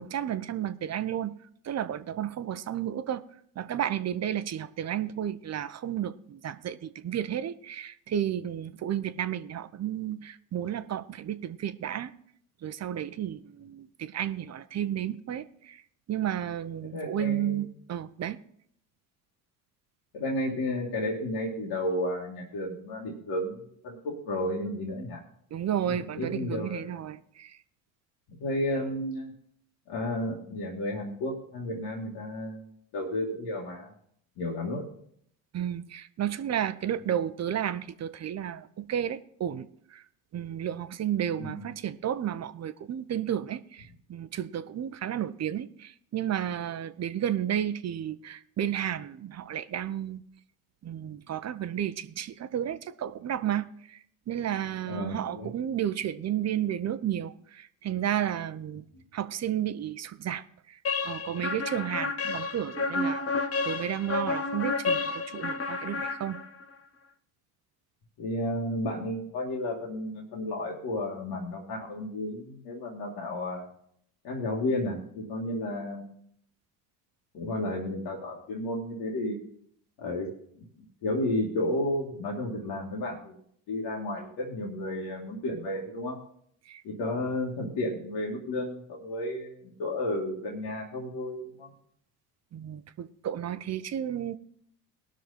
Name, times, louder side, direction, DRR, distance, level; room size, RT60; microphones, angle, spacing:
voice 1, 0.0-1.3 1.7-3.2 3.6-12.1 12.6-15.8 16.1-18.4 25.5-27.5 35.5-39.7 39.9-40.0 40.3-50.2 50.8-54.0 54.3-58.8 59.1-60.4 61.0-63.2 63.6-66.4 86.7-86.8 92.5-94.4, right 10 dB, 35° right, 0.8 m, -32 dB
voice 2, 16.8-17.7 20.1-25.2 25.9-27.0 28.3-29.3 29.9-32.6 32.9-33.9 34.4-34.9 41.4-41.7 54.9-55.5 68.2-73.7 74.2-76.1 77.3-79.4 80.0-80.3 81.0-83.4 83.7-86.2 86.8-91.7, left 1 dB, 65° left, 2.4 m, -32 dB
sound 1, 60.8-66.7, left 3 dB, 30° left, 1.1 m, -31 dB
18.5 x 6.2 x 4.2 m
supercardioid pair, 80°, 44 cm